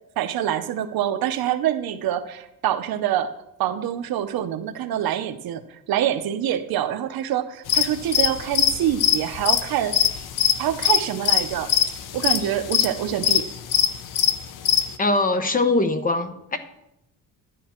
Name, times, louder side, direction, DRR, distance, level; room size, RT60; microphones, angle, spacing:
voice 1, 0.2-3.3 3.6-10.0 10.6-11.7 12.1-13.4, right 11 dB, 75° right, 9 dB, 0.8 m, -25 dB
sound 1, 7.7-14.9, left 10 dB, 60° left, 0.8 m, -21 dB
voice 2, 15.0-16.6, left 2 dB, 25° left, 9 dB, 0.8 m, -22 dB
11.0 x 9.5 x 4.4 m, 0.85 s
cardioid pair, 165°, 37 cm